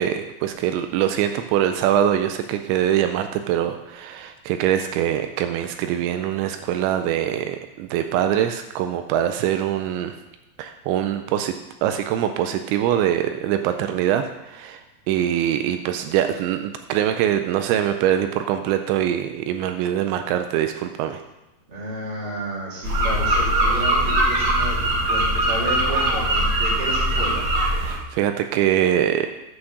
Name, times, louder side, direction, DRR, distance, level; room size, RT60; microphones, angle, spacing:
voice 1, 0.0-10.2 10.6-11.5 11.8-21.2 27.8-29.3, right 10 dB, 85° right, 7 dB, 2.8 m, -23 dB
voice 2, 21.7-27.5, right 1 dB, 20° right, -6 dB, 1.7 m, -32 dB
sound 1, 22.8-28.0, right 1 dB, 65° right, 1.1 m, -21 dB
8.7 x 5.7 x 6.5 m, 0.96 s
omnidirectional pair, 5.4 m